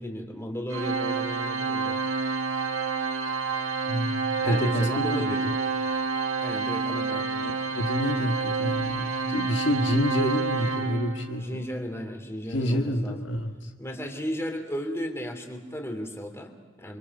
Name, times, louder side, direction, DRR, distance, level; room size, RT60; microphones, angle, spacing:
voice 1, 0.0-2.0 4.4-5.5 6.4-7.5 11.4-13.2 13.8-17.0, equal, 15° left, 4 dB, 2.9 m, -35 dB
Organ, 0.7-11.5, right 4 dB, 90° right, 1.9 m, -29 dB
voice 2, 3.8-5.5 7.4-11.7 12.5-13.7, equal, 65° left, 3 dB, 1.8 m, -28 dB
29.5 x 25.0 x 5.4 m, 1.2 s
head